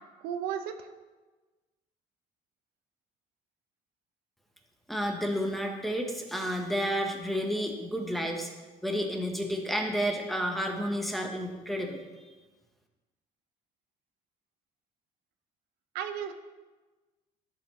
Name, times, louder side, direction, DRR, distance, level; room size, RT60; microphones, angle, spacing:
voice 1, 0.2-0.9 15.9-16.3, right 9 dB, 90° right, 8 dB, 0.6 m, -34 dB
voice 2, 4.9-8.5 8.8-12.0, equal, ahead, 2 dB, 1.0 m, -31 dB
13.0 x 5.6 x 3.1 m, 1.3 s
cardioid pair, 125°, 15 cm